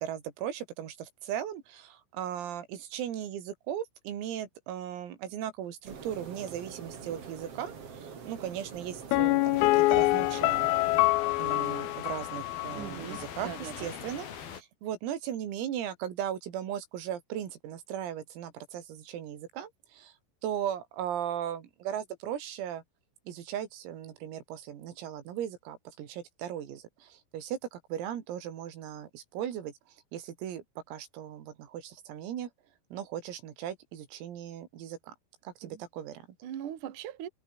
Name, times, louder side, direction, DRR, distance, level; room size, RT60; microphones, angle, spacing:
voice 1, 0.0-10.7 11.4-20.1 20.4-22.8 23.3-32.5 32.9-35.1 35.4-36.3, right 10 dB, 90° right, 5.6 m, -37 dB
sound 1, 5.8-11.1, right 6 dB, 35° right, 3.0 m, -45 dB
Piano, 9.1-12.9 13.1-13.2, left 20 dB, 85° left, 3.5 m, -25 dB
sound 2, 9.6-14.6, left 8 dB, 50° left, 4.4 m, -43 dB
voice 2, 12.7-13.9 35.6-35.8 36.4-37.3, right 10 dB, 50° right, 2.8 m, -40 dB
omnidirectional pair, 6.0 m